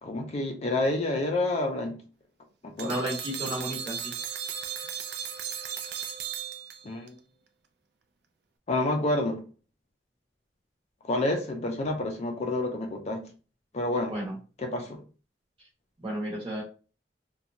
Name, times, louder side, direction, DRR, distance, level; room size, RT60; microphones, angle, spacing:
voice 1, 0.0-2.0 2.6-3.0 6.8-7.2 8.7-9.4 11.0-13.2 13.7-14.1 14.6-15.0, left 2 dB, 40° left, 0.5 m, -29 dB
voice 2, 2.8-4.1 14.1-14.3 16.0-16.6, right 1 dB, 30° right, 0.9 m, -32 dB
sound 1, 2.8-7.1, right 8 dB, 65° right, 0.4 m, -36 dB
2.8 x 2.3 x 2.5 m
head